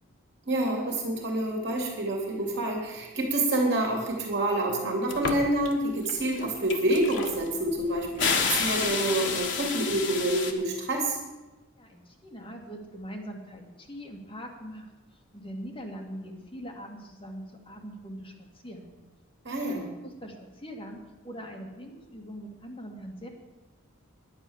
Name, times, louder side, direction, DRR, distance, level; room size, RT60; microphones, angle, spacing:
voice 1, 0.5-11.2 19.4-19.8, right 1 dB, 50° right, 0 dB, 2.6 m, -27 dB
sound 1, 5.1-5.7 6.1-10.5, left 5 dB, 55° left, 1.5 m, -29 dB
voice 2, 11.8-18.9 19.6-23.3, equal, 25° left, 0 dB, 2.1 m, -42 dB
11.0 x 9.6 x 7.1 m, 1.1 s
head